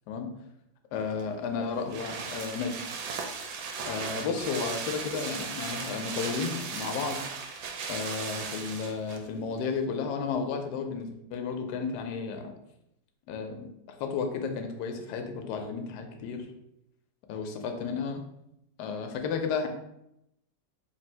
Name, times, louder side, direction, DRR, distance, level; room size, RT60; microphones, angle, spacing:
voice 1, 0.9-2.8 3.8-7.3 7.9-12.5 13.3-16.5 17.3-18.2 18.8-19.7, left 5 dB, 80° left, 5 dB, 1.1 m, -33 dB
sound 1, 1.1-9.3 9.6-9.7, right 5 dB, 70° right, 1.0 m, -37 dB
3.4 x 2.5 x 4.2 m, 0.83 s
omnidirectional pair, 1.7 m